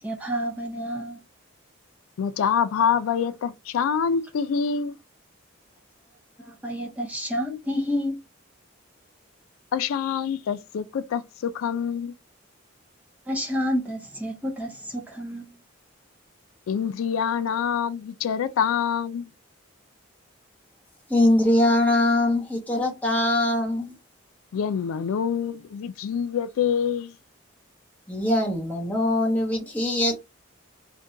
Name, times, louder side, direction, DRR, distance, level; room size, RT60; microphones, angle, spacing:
voice 1, 0.0-1.2 6.4-8.2 13.3-15.6, equal, 5° right, 0.5 m, -29 dB
voice 2, 2.2-5.0 9.7-12.1 16.7-19.3 24.5-27.1, left 7 dB, 85° left, 0.3 m, -26 dB
voice 3, 21.1-23.9 28.1-30.2, left 1 dB, 10° left, 0.9 m, -22 dB
2.5 x 2.2 x 3.6 m
head